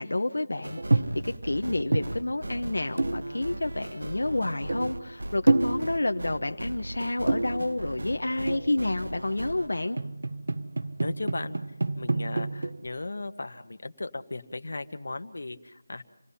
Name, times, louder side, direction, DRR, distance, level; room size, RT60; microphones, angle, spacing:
voice 1, 0.0-10.0, left 2 dB, 85° left, 6 dB, 1.0 m, -29 dB
sound 1, 0.6-9.7, right 1 dB, 85° right, 1.8 m, -38 dB
sound 2, 0.8-1.4 1.7-2.6 3.0-3.7 4.3-4.4 4.6-5.2 5.5-6.2 7.2-8.0 8.5-9.0 9.7-12.9, right 2 dB, 65° right, 0.9 m, -28 dB
voice 2, 11.0-11.6 12.0-16.0, left 2 dB, 65° left, 8 dB, 1.5 m, -36 dB
27.5 x 19.0 x 5.7 m, 0.85 s
figure-of-eight pair, 175°, 0 cm